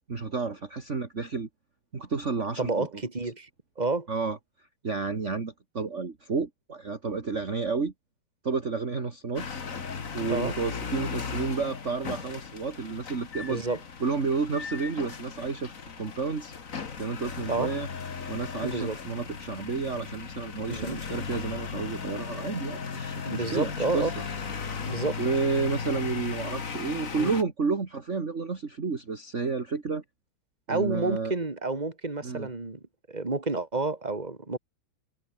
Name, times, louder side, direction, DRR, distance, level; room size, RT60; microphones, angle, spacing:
voice 1, 0.1-1.5 1.9-2.9 4.1-4.4 4.8-7.9 8.4-9.9 10.1-13.6 14.0-17.9 18.3-24.1 24.6-24.7 25.2-30.0 30.7-31.3 32.2-32.5, right 4 dB, 35° right, 2.5 m, -31 dB
voice 2, 2.6-3.5 3.8-4.1 10.3-10.5 13.4-13.8 17.5-17.7 18.6-19.0 20.7-21.0 23.2-24.1 24.8-25.2 27.2-27.3 30.7-32.8 33.1-34.6, right 3 dB, 20° right, 3.1 m, -30 dB
sound 1, 9.4-27.4, left 5 dB, 40° left, 2.1 m, -37 dB
omnidirectional pair, 2.2 m